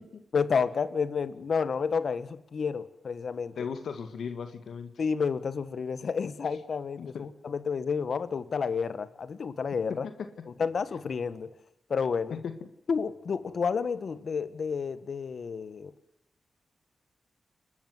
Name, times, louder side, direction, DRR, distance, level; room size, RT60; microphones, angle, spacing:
voice 1, 0.3-3.5 5.0-10.1 10.6-11.5 11.9-12.4 12.9-15.9, left 5 dB, 70° left, 14 dB, 1.6 m, -30 dB
voice 2, 3.6-4.9 7.0-7.3 12.3-12.5, left 6 dB, 85° left, 8 dB, 1.9 m, -36 dB
29.5 x 13.0 x 7.9 m, 0.85 s
cardioid pair, 70°, 0 cm